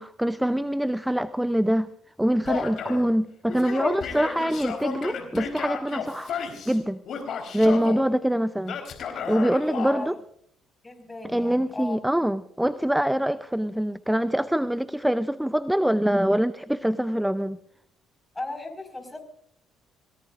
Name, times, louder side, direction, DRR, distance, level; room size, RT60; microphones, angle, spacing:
voice 1, 0.0-1.9 2.2-6.3 6.7-7.0 7.5-8.8 9.1-10.1 11.2-17.6, equal, 5° right, 14 dB, 0.6 m, -24 dB
Male speech man speaking / Yell, 2.5-3.1 3.5-6.8 7.1-8.0 8.7-10.0, left 6 dB, 55° left, 4.2 m, -33 dB
voice 2, 9.8-10.2 10.8-12.0 18.3-19.2, left 2 dB, 20° left, 5 dB, 5.3 m, -36 dB
28.0 x 17.5 x 2.6 m, 0.65 s
hypercardioid pair, 55°, 0 cm